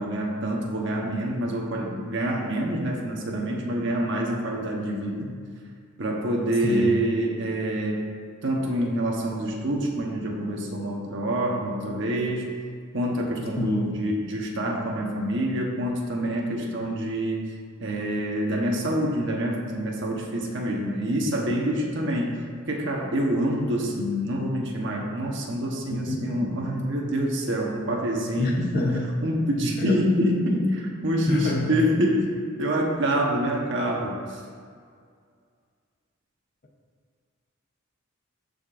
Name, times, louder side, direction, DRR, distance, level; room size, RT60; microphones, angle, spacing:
voice 1, 0.0-5.3 6.0-8.0 8.4-12.5 12.9-17.4 17.8-22.3 22.7-28.7 29.2-32.3 32.6-34.4, equal, 65° right, -1 dB, 1.2 m, -26 dB
voice 2, 6.6-7.0 13.6-13.9 25.9-26.5 28.4-29.1 29.8-30.0 31.3-31.8, left 1 dB, 45° left, -1 dB, 0.9 m, -27 dB
14.5 x 5.3 x 2.6 m, 2.1 s
head